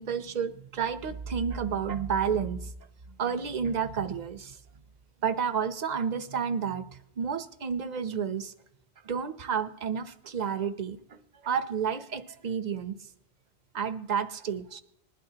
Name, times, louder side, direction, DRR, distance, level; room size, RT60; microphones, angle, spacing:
voice 1, 0.0-2.7 3.2-4.6 5.2-8.5 9.0-13.1 13.7-14.8, right 7 dB, 45° right, 11 dB, 0.8 m, -31 dB
20.5 x 12.0 x 2.8 m, 0.76 s
omnidirectional pair, 1.1 m